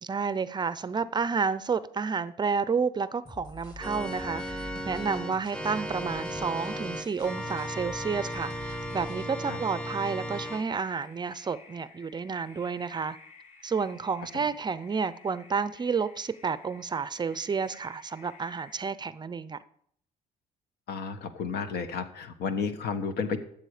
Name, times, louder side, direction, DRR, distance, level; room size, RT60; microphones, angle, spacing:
voice 1, 0.0-13.2 13.6-19.6, right 5 dB, 25° right, 0.5 m, -30 dB
sound 1, 3.2-9.2, left 1 dB, 25° left, 2.0 m, -48 dB
Organ, 3.8-10.6, equal, 5° left, 0.8 m, -36 dB
sound 2, 4.1-18.8, left 4 dB, 45° left, 2.7 m, -54 dB
voice 2, 20.9-23.4, left 5 dB, 70° left, 1.4 m, -32 dB
13.5 x 7.6 x 4.9 m
cardioid pair, 110°, 17 cm